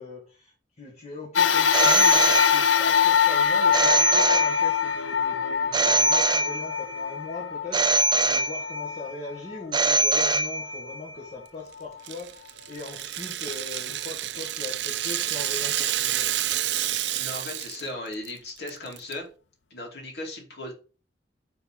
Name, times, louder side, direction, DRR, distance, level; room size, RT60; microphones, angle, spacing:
voice 1, 0.0-16.4, left 3 dB, 40° left, 1.7 m, -40 dB
sound 1, 1.4-10.0 10.6-10.7 11.8-11.9, left 7 dB, 90° left, 0.5 m, -23 dB
Telephone, 1.7-3.0 3.7-5.0 5.7-7.0 7.7-9.0 9.7-11.0, right 2 dB, 25° right, 0.5 m, -23 dB
Rattle (instrument), 12.0-17.9 18.1-18.3 18.7-19.1, right 12 dB, 75° right, 0.6 m, -29 dB
voice 2, 17.2-19.3 19.7-20.7, left 1 dB, 65° left, 2.7 m, -36 dB
9.5 x 3.9 x 4.8 m
head